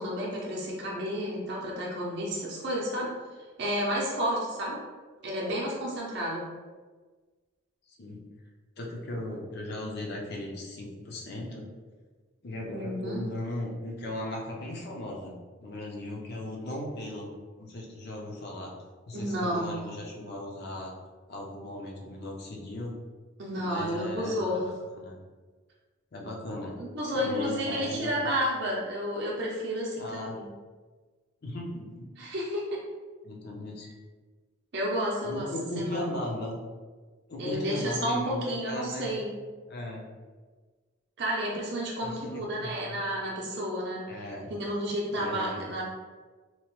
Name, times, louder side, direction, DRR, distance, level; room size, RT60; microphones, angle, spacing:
voice 1, 0.0-3.2 3.6-4.8 5.2-6.5 12.6-13.2 19.1-19.9 23.4-24.6 26.8-30.5 32.2-32.8 34.7-35.5 35.8-36.1 37.4-39.3 41.2-44.1 44.4-45.8, equal, 55° right, -4 dB, 0.5 m, -31 dB
voice 2, 8.8-11.6 12.4-15.3 15.6-17.3 17.6-18.7 19.1-20.9 21.3-22.9 23.6-24.6 25.0-25.1 26.1-26.8 27.1-28.1 30.0-30.4 31.4-32.1 33.2-33.9 35.2-36.6 37.3-39.2 39.7-40.0 42.0-43.0 44.1-44.5 45.1-45.6, left 1 dB, 50° left, -2 dB, 0.5 m, -37 dB
2.9 x 2.0 x 3.0 m, 1.4 s
head